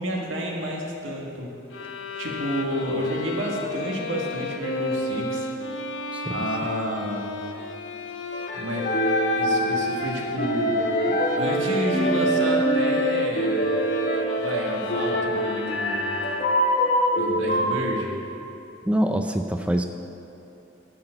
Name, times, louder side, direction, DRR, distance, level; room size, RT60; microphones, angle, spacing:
voice 1, 0.0-1.5 2.2-5.5 6.3-7.3 8.5-8.9 9.4-10.7 11.4-13.7 14.4-16.1 17.2-18.1, equal, 85° right, -1 dB, 1.7 m, -30 dB
sound 1, 1.7-16.8, left 2 dB, 85° left, 0.8 m, -33 dB
voice 2, 6.1-6.5 18.8-19.8, right 1 dB, 5° right, 5 dB, 0.4 m, -25 dB
sound 2, 8.3-17.7, equal, 45° left, 1.3 m, -24 dB
11.0 x 6.0 x 7.7 m, 3.0 s
head